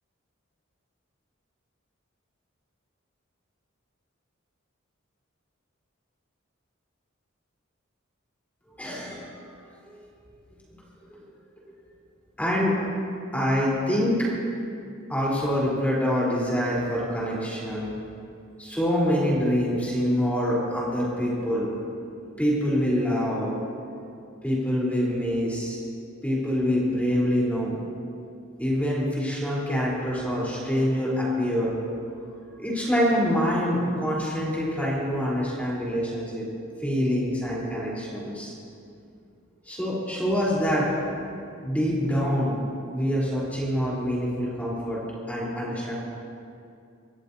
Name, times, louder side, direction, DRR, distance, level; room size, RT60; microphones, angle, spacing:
voice 1, 8.8-9.2 9.9-10.1 11.1-11.2 12.4-12.8 13.3-14.3 15.1-17.9 18.6-21.7 22.4-23.6 24.4-25.8 26.2-27.8 28.6-31.8 32.6-38.5 39.7-40.9 41.6-42.6 42.9-45.0 45.3-45.9, equal, 10° left, -6 dB, 3.8 m, -25 dB
24.0 x 14.0 x 2.8 m, 2.5 s
head